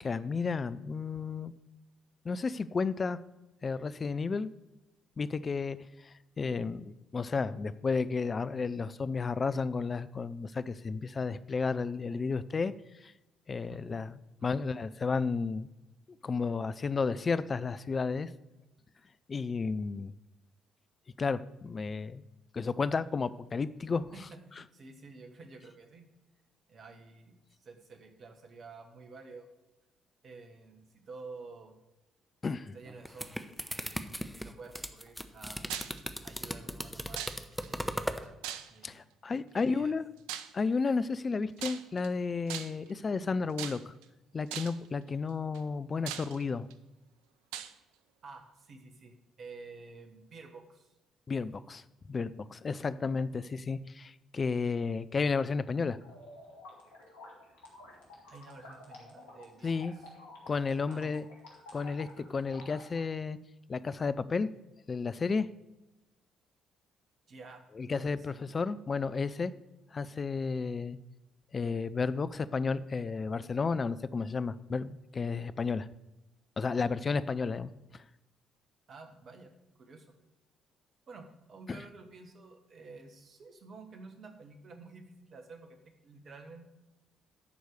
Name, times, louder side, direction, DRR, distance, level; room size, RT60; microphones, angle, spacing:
voice 1, 0.0-1.5 2.2-3.2 3.6-4.5 5.2-5.8 6.0-12.7 13.0-13.1 13.5-14.1 14.4-15.7 16.2-18.3 19.3-20.1 21.2-22.2 22.5-24.1 32.4-32.8 38.8-40.0 40.5-43.9 44.3-46.7 51.3-56.0 59.6-59.9 60.5-61.2 61.7-63.4 63.7-64.5 64.9-65.5 67.8-69.5 69.9-71.0 71.5-75.9 76.6-78.0 81.7-81.8, left 4 dB, 35° left, 15 dB, 0.4 m, -32 dB
voice 2, 13.7-14.0 14.4-14.6 24.1-26.0 26.7-29.5 30.2-31.7 32.7-35.7 36.2-37.3 37.8-38.4 38.7-39.9 48.2-50.9 58.3-60.1 60.9-61.1 67.3-68.4 78.9-79.5 79.8-80.1 81.1-85.8 86.0-86.7, right 3 dB, 50° right, 5 dB, 1.4 m, -51 dB
sound 1, 32.9-38.3, equal, ahead, 0.8 m, -37 dB
sound 2, 35.7-36.0 37.2-37.7 38.4-39.0 40.3-40.6 41.6-42.1 42.5-42.9 43.6-44.0 44.5-44.9 45.5-45.6 46.1-46.7 47.5-47.7, right 11 dB, 70° right, 0.4 m, -40 dB
sound 3, 56.0-63.0, left 2 dB, 75° left, 1.9 m, -51 dB
11.0 x 4.7 x 6.6 m, 0.99 s
figure-of-eight pair, 45°, 0 cm